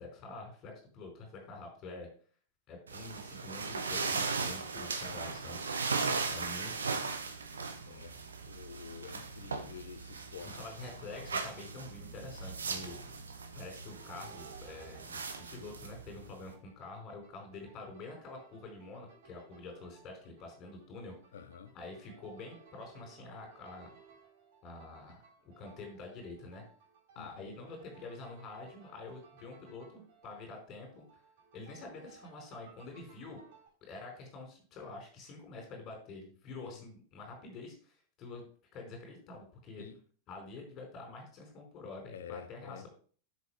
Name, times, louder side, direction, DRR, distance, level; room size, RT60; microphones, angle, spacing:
voice 1, 0.0-2.1 2.7-5.6 6.3-6.7 10.4-13.1 13.5-15.2 15.5-21.1 21.7-23.9 24.6-25.2 25.6-26.6 27.1-31.0 31.5-33.4 33.8-37.9 38.2-39.9 40.3-42.9, left 3 dB, 35° left, 4.8 m, -47 dB
sound 1, 2.9-16.5, right 4 dB, 70° right, 1.3 m, -38 dB
sound 2, 3.5-16.2, right 5 dB, ahead, 4.0 m, -55 dB
voice 2, 6.1-6.4 7.8-10.6 21.3-21.8 27.2-27.5 36.6-36.8 39.8-40.0 42.1-42.8, left 7 dB, 65° left, 0.8 m, -49 dB
sound 3, 13.9-33.7, right 5 dB, 55° right, 4.8 m, -60 dB
8.1 x 6.9 x 5.0 m
figure-of-eight pair, 90°, 0 cm